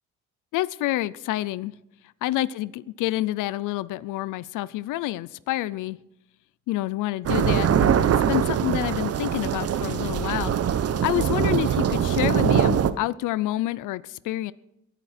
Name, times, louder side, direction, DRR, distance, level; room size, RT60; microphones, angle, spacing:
voice 1, 0.5-1.7 2.2-6.0 6.7-10.5 11.0-14.5, left 16 dB, 90° left, 18 dB, 0.6 m, -28 dB
sound 1, 7.3-12.9, right 9 dB, 55° right, 0.9 m, -22 dB
22.5 x 9.1 x 4.3 m, 0.85 s
cardioid pair, 90°, 30 cm